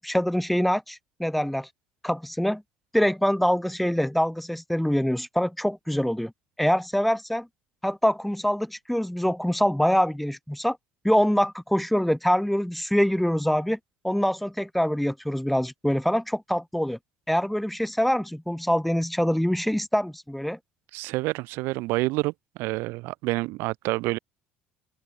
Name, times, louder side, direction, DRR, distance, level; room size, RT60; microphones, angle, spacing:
voice 1, 0.0-1.7 2.0-2.6 2.9-6.3 6.6-7.5 7.8-10.8 11.0-13.8 14.0-17.0 17.3-20.6, equal, ahead, 1.0 m, -24 dB
voice 2, 20.9-22.3 22.6-24.2, right 22 dB, 75° right, 2.1 m, -28 dB
open air
cardioid pair, 135°, 4 cm